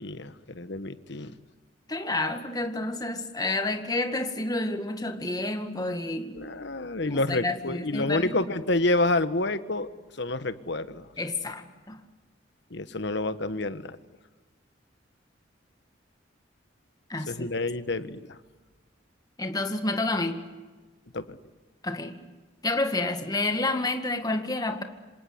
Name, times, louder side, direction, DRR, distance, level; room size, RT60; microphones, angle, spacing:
voice 1, 0.0-1.3 6.3-9.9 10.2-11.1 12.7-14.0 17.3-18.4 21.1-21.4, left 2 dB, 65° left, 12 dB, 1.4 m, -28 dB
voice 2, 1.9-6.4 7.0-8.4 11.2-12.0 17.1-17.5 19.4-20.5 21.8-22.2 22.6-24.8, left 2 dB, 20° left, 6 dB, 2.0 m, -29 dB
27.0 x 27.0 x 8.0 m, 1.3 s
head